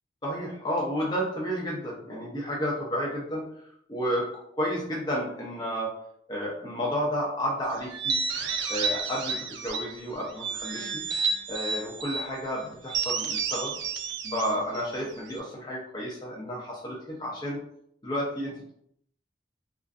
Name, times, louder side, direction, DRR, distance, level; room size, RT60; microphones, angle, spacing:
voice 1, 0.2-3.5 3.9-4.3 4.5-5.9 6.3-8.2 8.7-11.0 11.5-13.7 14.3-17.6 18.0-18.7, equal, 25° left, -4 dB, 0.5 m, -31 dB
sound 1, 7.9-10.0 10.4-12.3 12.9-15.4, right 5 dB, 80° right, 0.3 m, -31 dB
2.4 x 2.4 x 2.3 m, 0.68 s
head